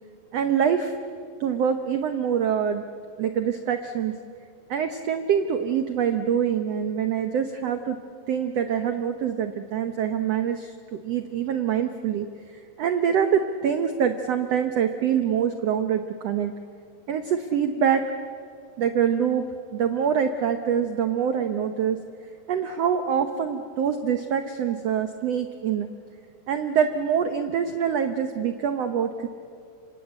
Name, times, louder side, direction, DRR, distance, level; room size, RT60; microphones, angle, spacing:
voice 1, 0.3-0.9 1.4-2.8 3.2-4.1 4.7-8.0 8.3-16.5 17.1-18.0 18.8-19.4 19.7-22.0 22.5-25.9 26.5-29.3, right 8 dB, 90° right, 8 dB, 1.4 m, -25 dB
26.0 x 26.0 x 8.1 m, 2.3 s
omnidirectional pair, 4.3 m